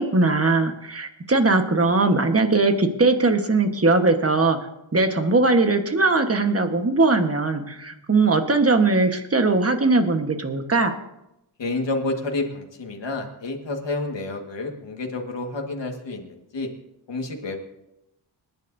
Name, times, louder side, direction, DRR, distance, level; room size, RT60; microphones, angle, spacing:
voice 1, 0.0-4.6 4.9-10.9, right 3 dB, 30° right, 6 dB, 1.3 m, -20 dB
voice 2, 11.6-16.7 17.1-17.6, left 2 dB, 70° left, 2 dB, 1.8 m, -29 dB
26.0 x 10.5 x 2.7 m, 0.87 s
wide cardioid pair, 105°, 46 cm